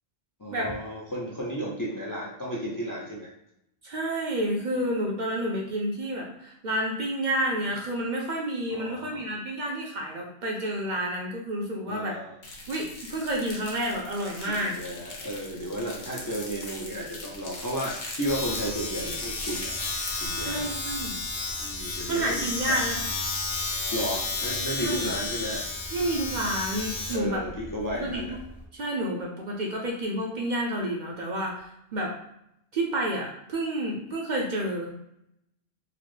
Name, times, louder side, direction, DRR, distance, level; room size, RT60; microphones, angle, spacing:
voice 1, 0.4-3.3 8.7-9.2 11.9-12.4 14.5-19.8 20.1-20.7 21.6-22.8 23.9-25.7 27.1-28.4, equal, 30° left, -4 dB, 0.4 m, -33 dB
voice 2, 3.8-12.1 12.7-14.7 20.4-21.2 22.1-23.0 24.8-25.1 25.9-27.4 27.9-28.4 28.7-32.1 32.7-34.9, right 1 dB, 55° right, -1 dB, 0.6 m, -30 dB
sound 1, 12.4-20.3, left 2 dB, 50° left, 0.8 m, -40 dB
Domestic sounds home sounds, 18.3-28.6, left 3 dB, 80° left, 1.1 m, -32 dB
3.8 x 2.0 x 3.1 m, 0.78 s
omnidirectional pair, 1.1 m